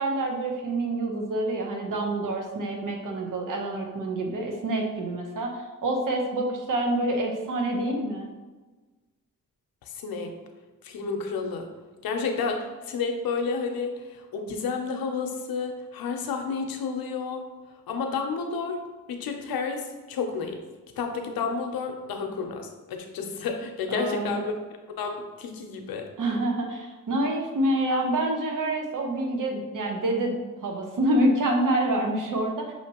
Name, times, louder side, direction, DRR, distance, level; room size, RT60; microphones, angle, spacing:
voice 1, 0.0-8.3 23.9-24.4 26.2-30.3 30.6-32.7, right 1 dB, 65° right, 2 dB, 0.9 m, -27 dB
voice 2, 9.8-10.3 10.8-11.7 12.0-17.4 17.9-18.8 19.1-20.6 21.0-24.5 25.0-26.1, left 5 dB, 80° left, 4 dB, 0.7 m, -31 dB
5.8 x 2.8 x 2.9 m, 1.2 s
cardioid pair, 80°, 35 cm